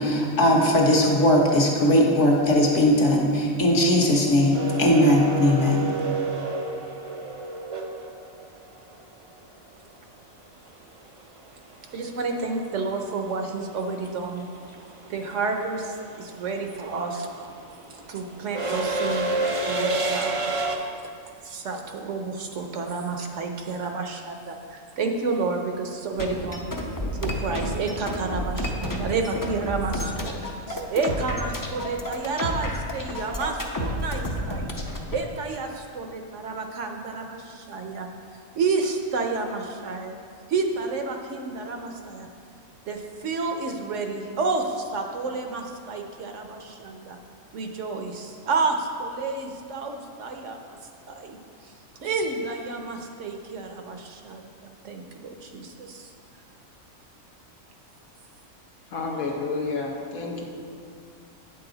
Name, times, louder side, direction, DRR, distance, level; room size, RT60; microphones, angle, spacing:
voice 1, 0.0-5.9, left 1 dB, 60° left, -1 dB, 1.5 m, -19 dB
sound 1, 4.5-8.6 11.0-11.1 12.4-12.7 13.0-20.8, right 3 dB, 50° right, 0.4 m, -29 dB
voice 2, 11.9-14.5 15.1-17.3 17.9-19.3 19.6-20.4 21.4-26.6 27.1-30.4 30.7-34.7 35.1-38.1 38.6-40.2 40.5-42.3 42.9-47.2 47.5-50.8 51.1-51.4 51.6-51.7 52.0-54.5 54.8-56.1, right 4 dB, 65° right, 4 dB, 1.0 m, -30 dB
sound 2, 26.2-35.2, equal, 25° left, 0.4 m, -30 dB
voice 3, 58.9-60.4, left 3 dB, 80° left, 0 dB, 1.4 m, -30 dB
9.2 x 6.8 x 3.9 m, 2.4 s
omnidirectional pair, 1.5 m